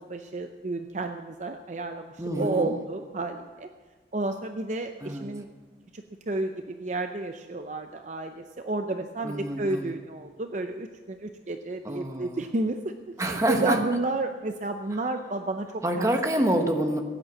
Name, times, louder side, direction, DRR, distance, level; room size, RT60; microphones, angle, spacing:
voice 1, 0.0-3.7 4.1-5.5 5.9-16.1, right 2 dB, 40° right, 7 dB, 0.6 m, -31 dB
voice 2, 2.2-2.7 5.0-5.3 9.2-9.9 11.8-12.4 13.2-13.8 15.8-17.0, right 1 dB, 20° right, 5 dB, 1.1 m, -27 dB
15.5 x 9.2 x 7.4 m, 1.4 s
head